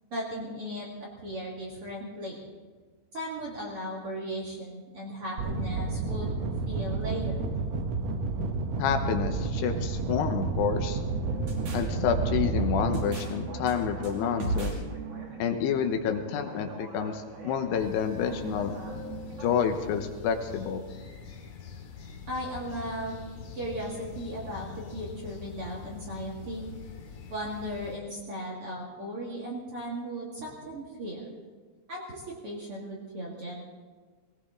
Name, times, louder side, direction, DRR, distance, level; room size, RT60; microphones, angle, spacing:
voice 1, 0.1-2.4 3.1-6.4 6.7-7.5 22.3-23.1 23.5-26.7 27.3-31.3 31.9-33.6, equal, 45° right, -3 dB, 2.1 m, -37 dB
sound 1, 5.4-13.0, right 3 dB, 80° right, 1.5 m, -31 dB
voice 2, 8.8-11.0 11.7-14.7 15.4-18.7 19.4-20.8, left 7 dB, 80° left, 6 dB, 3.0 m, -29 dB
sound 2, 11.1-19.6, right 3 dB, 65° right, 4.2 m, -36 dB
sound 3, 17.8-28.0, left 6 dB, 55° left, 2.4 m, -44 dB
19.0 x 18.5 x 3.7 m, 1.5 s
omnidirectional pair, 4.8 m